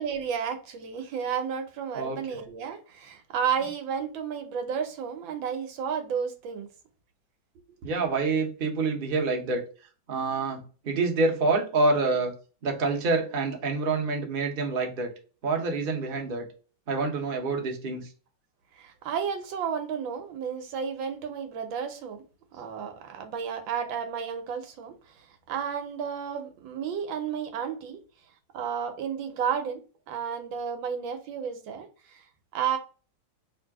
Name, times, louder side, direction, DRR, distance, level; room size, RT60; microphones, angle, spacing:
voice 1, 0.0-6.7 18.7-22.2 22.5-28.0 28.5-29.8 30.1-32.2 32.5-32.8, right 7 dB, 80° right, 6 dB, 1.6 m, -32 dB
voice 2, 1.9-2.4 3.6-3.7 7.8-9.6 10.1-12.3 12.6-15.1 15.4-16.4 16.9-18.1, right 3 dB, 40° right, 2 dB, 0.8 m, -27 dB
3.4 x 2.7 x 4.6 m, 0.36 s
omnidirectional pair, 2.1 m